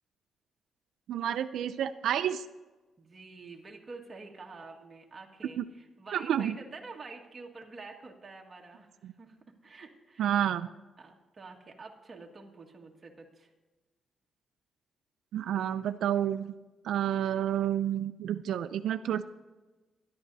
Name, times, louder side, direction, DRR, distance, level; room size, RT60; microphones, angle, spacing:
voice 1, 1.1-2.5 5.6-5.7 6.1-6.6 9.0-9.1 10.2-10.7 15.3-16.5 16.8-19.2, right 10 dB, 80° right, 8 dB, 0.4 m, -29 dB
voice 2, 3.0-9.4 9.6-10.3 11.0-13.5, right 3 dB, 25° right, 0 dB, 1.7 m, -48 dB
24.0 x 11.0 x 2.7 m, 1.2 s
cardioid pair, 145°, 0 cm